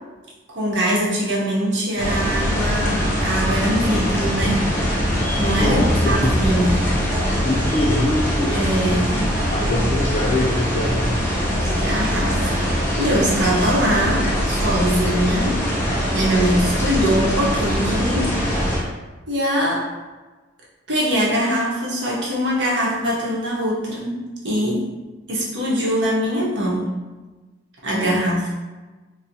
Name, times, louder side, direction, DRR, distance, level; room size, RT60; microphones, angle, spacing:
voice 1, 0.5-4.7 5.4-7.0 8.5-9.2 11.5-12.7 13.0-15.6 16.1-18.3 19.3-19.9 20.9-24.9 25.3-27.0 27.8-28.5, equal, 70° right, -5 dB, 0.9 m, -22 dB
sound 1, 2.0-18.8, equal, 15° left, 0.8 m, -22 dB
voice 2, 5.5-6.4 7.4-11.6 28.0-28.2, left 1 dB, 30° left, 0 dB, 0.4 m, -24 dB
3.9 x 2.0 x 2.7 m, 1.2 s
head